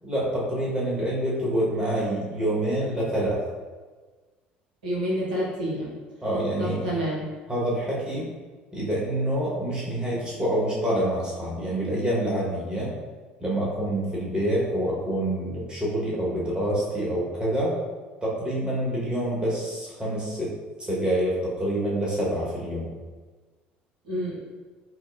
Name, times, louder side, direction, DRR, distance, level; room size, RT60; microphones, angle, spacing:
voice 1, 0.0-3.4 6.2-6.9 7.5-8.3 8.7-12.9 13.4-17.7 18.2-20.5 20.8-22.9, right 1 dB, 20° right, -6 dB, 1.3 m, -27 dB
voice 2, 4.8-5.9 6.6-7.3 24.0-24.4, equal, 75° right, -6 dB, 0.8 m, -28 dB
5.6 x 2.1 x 2.5 m, 1.4 s
figure-of-eight pair, 60°, 5 cm